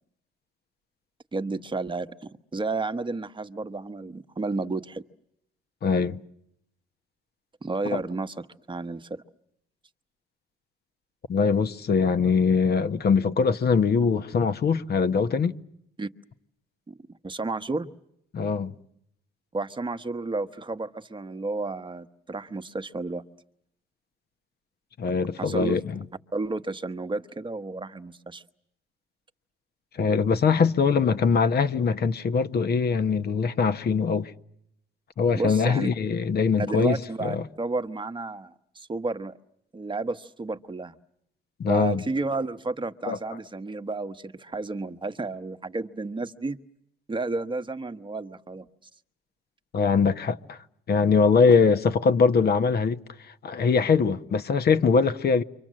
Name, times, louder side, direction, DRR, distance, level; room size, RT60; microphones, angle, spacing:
voice 1, 1.3-5.0 7.6-8.3 8.7-9.2 16.0-16.1 16.9-17.0 17.2-17.9 19.5-23.2 25.4-25.8 26.3-28.4 35.4-35.9 36.6-39.3 39.7-40.9 41.7-46.6 47.1-48.7, right 3 dB, 25° right, 1.2 m, -31 dB
voice 2, 5.8-6.2 7.9-8.0 11.3-15.6 18.3-18.7 25.0-25.8 30.0-34.3 35.2-37.4 41.6-42.0 43.1-43.2 49.7-50.6 50.9-53.0 53.4-55.4, left 5 dB, 55° left, 1.1 m, -22 dB
29.0 x 25.0 x 7.6 m
cardioid pair, 90°, 20 cm